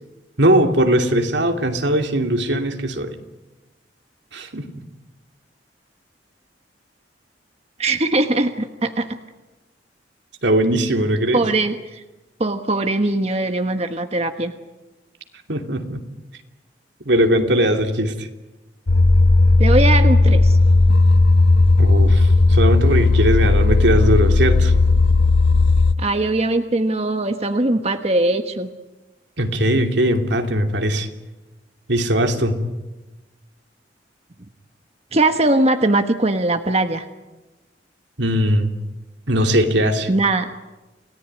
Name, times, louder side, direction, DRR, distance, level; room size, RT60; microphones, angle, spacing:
voice 1, 0.4-3.2 4.3-4.7 10.4-11.4 15.5-16.0 17.0-18.3 21.8-24.7 29.4-31.1 31.9-32.6 38.2-38.7 39.3-40.1, right 1 dB, 80° right, 5 dB, 2.8 m, -19 dB
voice 2, 7.8-9.2 11.3-12.0 12.4-14.5 19.6-20.6 26.0-28.7 35.1-37.0 40.1-40.5, right 2 dB, 35° right, 7 dB, 1.3 m, -20 dB
sound 1, 18.9-25.9, left 2 dB, 80° left, 1.0 m, -14 dB
29.0 x 18.0 x 9.7 m, 1.1 s
head